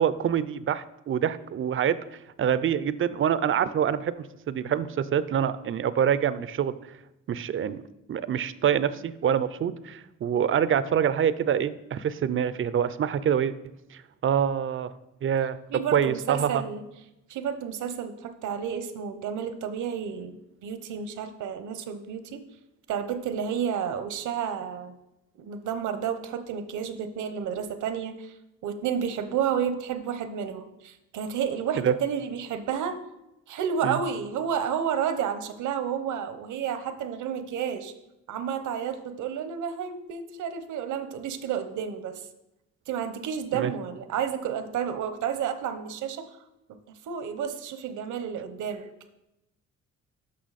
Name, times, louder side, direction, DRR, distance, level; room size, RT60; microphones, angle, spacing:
voice 1, 0.0-2.0 2.4-6.7 7.3-7.8 8.1-13.5 13.9-14.9 15.2-15.6 15.9-16.6 31.7-31.9 33.8-34.0 43.5-43.7, right 8 dB, 45° right, 15 dB, 0.5 m, -26 dB
voice 2, 15.7-16.8 17.3-20.4 20.6-22.4 22.9-25.0 25.4-28.3 28.6-33.0 33.5-37.9 38.3-42.2 42.9-46.2 46.9-48.9, right 8 dB, 75° right, 10 dB, 0.9 m, -31 dB
13.0 x 5.6 x 4.1 m, 0.92 s
cardioid pair, 90°, 30 cm